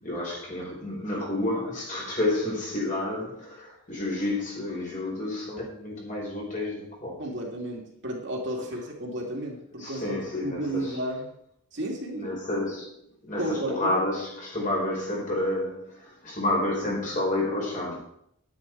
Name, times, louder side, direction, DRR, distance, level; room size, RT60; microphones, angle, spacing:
voice 1, 0.0-7.2 9.8-11.0 12.1-18.0, left 1 dB, 35° left, 4.6 m, -30 dB
voice 2, 7.2-11.3 11.7-12.4 13.4-13.9, right 1 dB, 55° right, 2.6 m, -33 dB
10.5 x 9.8 x 4.7 m
head